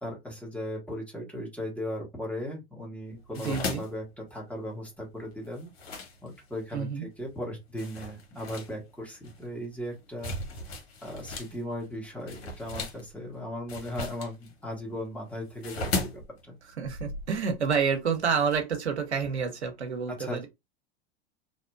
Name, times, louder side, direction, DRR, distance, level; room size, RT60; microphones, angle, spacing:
voice 1, 0.0-5.7 6.2-10.3 11.0-16.5 20.1-20.4, left 1 dB, 5° left, 1.2 m, -37 dB
sound 1, 3.1-6.7 7.2-7.4 7.8-11.6 11.8-18.6, left 2 dB, 70° left, 0.8 m, -37 dB
voice 2, 3.3-3.8 6.7-7.1 16.8-20.5, right 6 dB, 85° right, 0.7 m, -28 dB
2.6 x 2.1 x 2.3 m
figure-of-eight pair, 80°, 33 cm